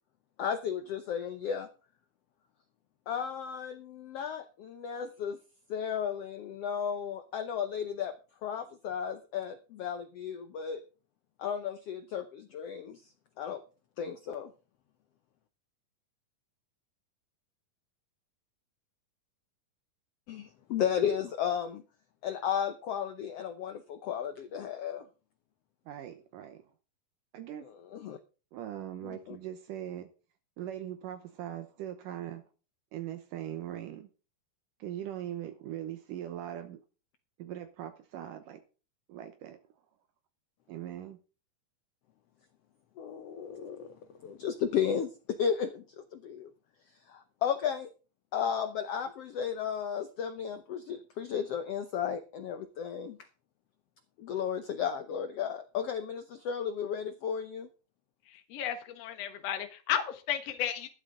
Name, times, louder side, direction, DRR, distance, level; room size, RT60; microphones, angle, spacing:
voice 1, 0.4-1.7 3.1-5.4 5.7-8.1 8.4-10.8 11.4-13.0 13.4-13.6 14.0-14.5 20.3-21.8 22.2-25.1 27.9-28.2 29.0-29.4 43.0-43.9 44.2-45.8 46.1-46.5 47.1-47.9 48.3-53.2 54.2-57.7, left 8 dB, 80° left, 9 dB, 1.3 m, -34 dB
voice 2, 25.9-26.6 27.3-27.6 28.5-30.1 30.6-32.4 32.9-34.1 34.8-36.8 37.4-38.6 39.1-39.6 40.7-41.2, right 11 dB, 75° right, 8 dB, 2.5 m, -40 dB
voice 3, 58.5-60.9, left 10 dB, 55° left, 7 dB, 2.3 m, -33 dB
13.0 x 12.0 x 3.8 m, 0.35 s
omnidirectional pair, 3.9 m